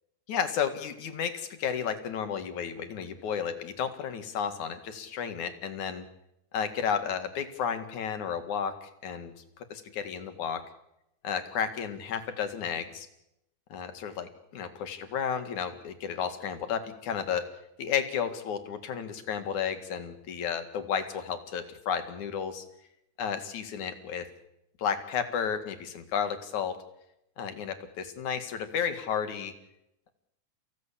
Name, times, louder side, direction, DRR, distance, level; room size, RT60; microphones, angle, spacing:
voice 1, 0.3-6.0 6.5-9.3 9.7-10.6 11.2-13.1 13.7-17.5 17.8-22.6 23.2-24.3 24.8-26.8 27.4-29.5, left 7 dB, 80° left, 8 dB, 3.4 m, -32 dB
30.0 x 17.0 x 8.5 m, 0.86 s
omnidirectional pair, 3.4 m